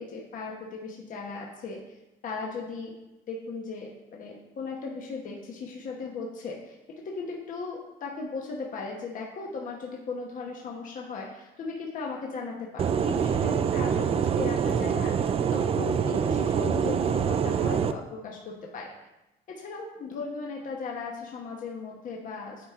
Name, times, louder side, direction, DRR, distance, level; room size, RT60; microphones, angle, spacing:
voice 1, 0.0-2.0 2.2-3.0 3.3-15.1 15.5-18.9 19.5-22.7, left 4 dB, 50° left, -1 dB, 1.1 m, -37 dB
sound 1, 12.8-17.9, right 7 dB, 35° right, 0.4 m, -25 dB
9.1 x 4.4 x 3.6 m, 0.97 s
cardioid pair, 110°, 17 cm